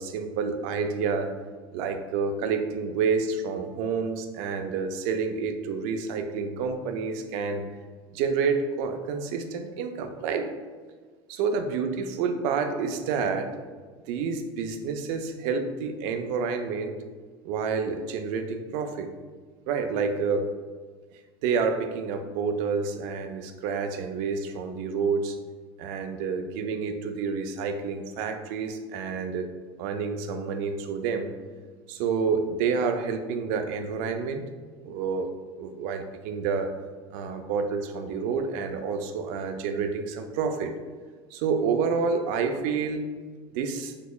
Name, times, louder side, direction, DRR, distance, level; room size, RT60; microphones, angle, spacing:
voice 1, 0.0-1.3 1.7-7.6 8.1-10.5 11.3-13.6 14.1-16.9 17.4-19.1 19.7-20.5 21.4-25.4 25.8-29.5 29.8-31.3 31.9-34.4 34.8-35.3 35.6-36.7 37.1-40.7 41.3-43.1 43.5-43.9, right 5 dB, 70° right, 7 dB, 0.4 m, -29 dB
3.9 x 2.8 x 2.2 m, 1.4 s
supercardioid pair, 100°, 13 cm